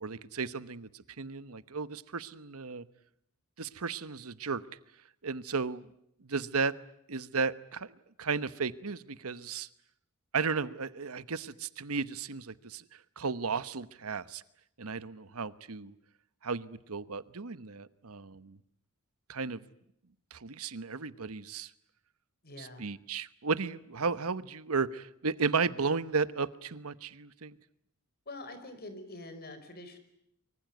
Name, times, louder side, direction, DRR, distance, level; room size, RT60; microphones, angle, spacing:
voice 1, 0.0-2.8 3.6-4.6 5.2-5.9 6.2-6.7 7.1-7.9 8.2-9.7 10.3-14.4 14.8-15.9 16.4-18.6 19.3-19.6 20.3-21.7 22.6-27.6, right 4 dB, 70° right, 15 dB, 1.1 m, -34 dB
voice 2, 22.4-22.8 28.2-30.0, left 2 dB, 45° left, 9 dB, 5.1 m, -45 dB
24.5 x 24.0 x 9.4 m, 0.74 s
head